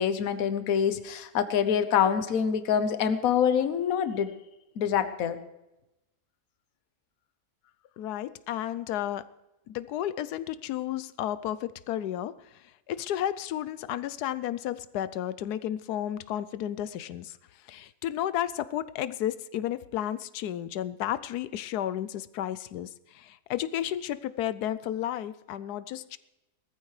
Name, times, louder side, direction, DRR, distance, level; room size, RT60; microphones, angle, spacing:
voice 1, 0.0-4.3 4.8-5.4, left 8 dB, 65° left, 10 dB, 1.3 m, -25 dB
voice 2, 8.0-9.2 9.7-17.4 17.7-26.2, left 11 dB, 85° left, 16 dB, 1.2 m, -32 dB
19.5 x 14.0 x 3.2 m, 0.95 s
omnidirectional pair, 1.6 m